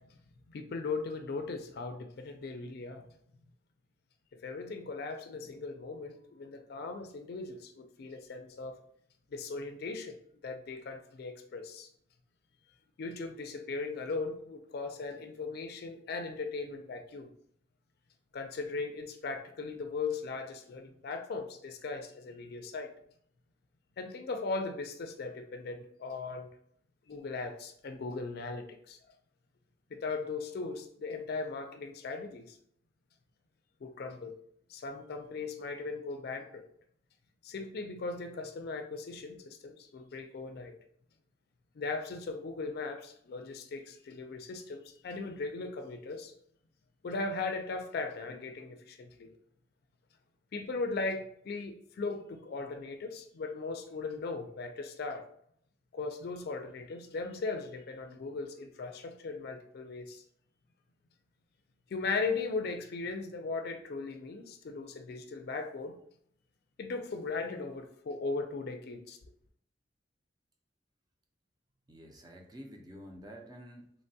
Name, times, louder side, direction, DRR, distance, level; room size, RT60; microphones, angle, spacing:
voice 1, 0.5-3.1 4.4-8.8 9.3-10.2 10.4-11.9 13.0-17.3 18.3-22.9 24.0-26.5 27.1-29.0 29.9-32.6 33.8-34.4 34.7-36.6 37.4-40.7 41.8-46.3 47.0-49.3 50.5-55.2 55.9-60.2 61.9-66.0 66.8-69.2, left 3 dB, 60° left, 5 dB, 0.4 m, -38 dB
voice 2, 71.9-74.0, equal, 20° right, 2 dB, 0.5 m, -49 dB
3.0 x 2.2 x 2.6 m, 0.66 s
head